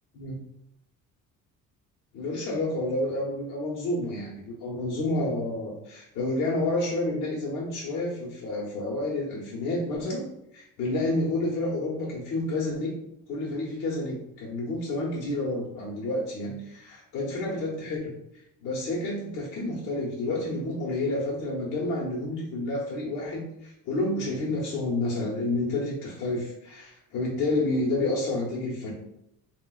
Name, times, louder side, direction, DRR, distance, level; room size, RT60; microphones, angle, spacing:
voice 1, 0.1-0.5 2.1-13.0 13.3-18.1 18.6-28.9, left 2 dB, 80° left, -4 dB, 0.9 m, -29 dB
3.8 x 2.4 x 2.3 m, 0.81 s
cardioid pair, 165°, 31 cm